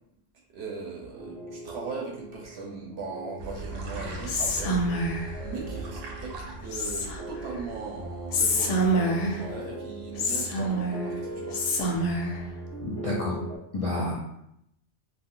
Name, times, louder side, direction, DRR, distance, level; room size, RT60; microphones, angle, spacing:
voice 1, 0.5-12.0, right 4 dB, 60° right, -2 dB, 0.9 m, -39 dB
sound 1, 1.2-13.6, right 2 dB, 35° right, 0.5 m, -40 dB
sound 2, 3.4-8.7, right 2 dB, 90° right, 1.0 m, -40 dB
Whispering, 4.3-5.4 6.7-7.4 8.3-9.5 10.2-11.1 11.5-12.4, equal, 85° left, 0.9 m, -26 dB
voice 2, 12.8-13.4 13.7-14.1, left 2 dB, 50° left, -4 dB, 0.4 m, -29 dB
2.5 x 2.4 x 3.7 m, 0.78 s
omnidirectional pair, 1.3 m